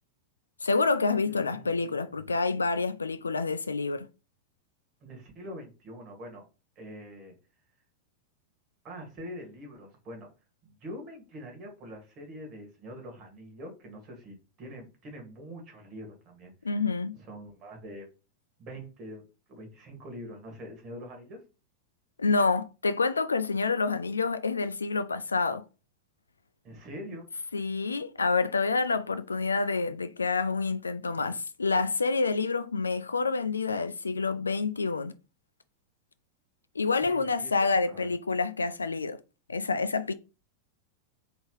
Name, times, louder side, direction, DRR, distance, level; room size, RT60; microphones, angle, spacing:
voice 1, 0.6-4.1 16.6-17.1 22.2-25.6 27.5-35.1 36.8-39.2 39.5-40.1, left 4 dB, 75° left, 0.3 m, -28 dB
voice 2, 1.2-1.8 5.0-6.5 6.8-7.3 8.8-10.3 10.6-16.8 17.1-18.1 18.6-21.4 26.6-27.3 37.0-38.1, equal, 35° right, 1.8 m, -44 dB
3.9 x 3.4 x 3.0 m
figure-of-eight pair, 90°, 0 cm